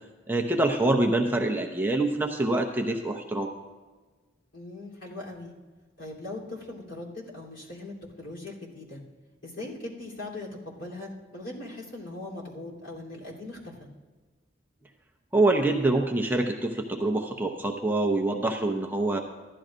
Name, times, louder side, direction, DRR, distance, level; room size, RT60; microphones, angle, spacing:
voice 1, 0.3-3.5 15.3-19.2, right 2 dB, 10° right, 2 dB, 0.6 m, -25 dB
voice 2, 4.5-5.5 6.0-9.0 9.4-13.9, left 2 dB, 80° left, -4 dB, 3.2 m, -40 dB
15.0 x 12.0 x 2.5 m, 1.3 s
head